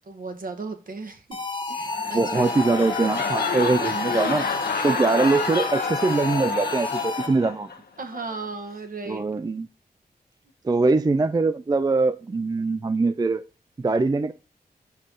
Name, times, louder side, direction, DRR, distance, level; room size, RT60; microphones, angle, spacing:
voice 1, 0.1-1.4 1.7-2.5 3.6-4.0 8.0-9.2, right 3 dB, 60° right, 1.6 m, -36 dB
sound 1, 1.3-7.6, left 3 dB, 30° left, 1.2 m, -31 dB
sound 2, 1.8-7.8 8.1-8.5, left 5 dB, 85° left, 1.0 m, -29 dB
voice 2, 2.1-4.5 4.8-7.7 9.1-9.7 10.6-13.4 13.8-14.3, right 3 dB, 25° right, 0.4 m, -22 dB
6.5 x 5.6 x 3.8 m
cardioid pair, 70°, 16 cm